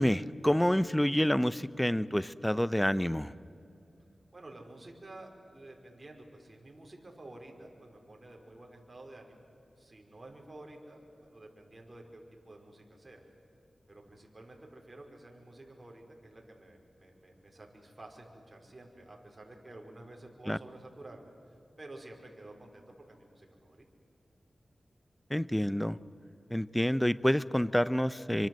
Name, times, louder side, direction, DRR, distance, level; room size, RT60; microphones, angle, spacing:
voice 1, 0.0-3.3 20.5-20.6 25.3-26.0 26.5-28.5, equal, 5° left, 17 dB, 0.7 m, -28 dB
voice 2, 4.3-9.5 9.8-13.2 13.9-23.8, right 2 dB, 35° right, 1 dB, 4.8 m, -51 dB
26.0 x 24.0 x 7.8 m, 2.6 s
cardioid pair, 55°, 0 cm